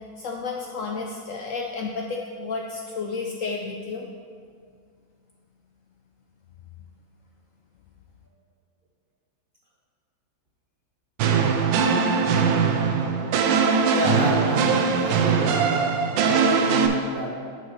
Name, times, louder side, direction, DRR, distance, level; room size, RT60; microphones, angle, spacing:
voice 1, 0.0-4.1, left 4 dB, 80° left, 0 dB, 0.7 m, -32 dB
sound 1, 11.2-16.9, right 5 dB, 80° right, 1.3 m, -21 dB
voice 2, 13.9-15.9 16.2-17.4, right 1 dB, 55° right, -3 dB, 0.6 m, -30 dB
11.0 x 5.8 x 3.1 m, 2.1 s
omnidirectional pair, 2.0 m